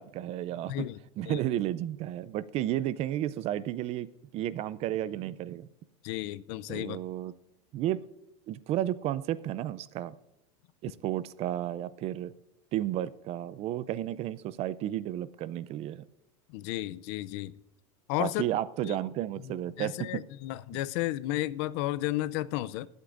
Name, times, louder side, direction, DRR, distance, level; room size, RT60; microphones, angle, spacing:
voice 1, 0.0-0.9 1.2-4.1 4.3-5.7 6.7-7.3 7.7-8.0 8.5-10.1 10.8-12.3 12.7-16.0 18.2-20.2, right 12 dB, 40° right, 0.5 m, -32 dB
voice 2, 6.0-7.0 16.5-17.5 18.1-18.4 18.8-19.0 19.4-22.9, left 16 dB, 60° left, 0.5 m, -33 dB
21.0 x 8.2 x 2.5 m
supercardioid pair, 130°, 16 cm